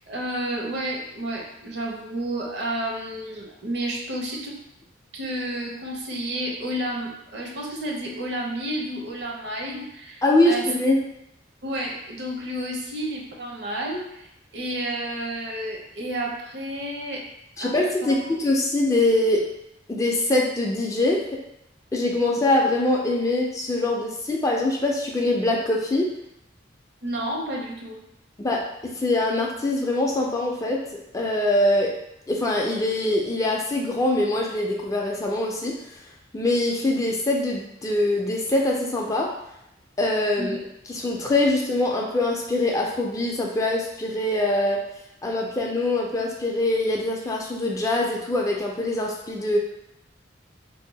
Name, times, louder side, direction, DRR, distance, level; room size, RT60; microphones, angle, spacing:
voice 1, 0.1-4.6 5.1-10.6 11.6-17.2 17.6-17.7 18.0-18.1 27.0-28.0 40.4-40.5, right 1 dB, 60° right, -1 dB, 0.6 m, -31 dB
voice 2, 10.2-11.1 17.6-19.5 19.9-21.2 21.9-26.1 28.4-30.8 31.1-31.9 32.3-35.7 36.3-39.3 40.0-40.6 40.9-44.8 45.2-49.6, left 2 dB, 15° left, -1 dB, 0.3 m, -23 dB
2.6 x 2.1 x 3.9 m, 0.82 s
head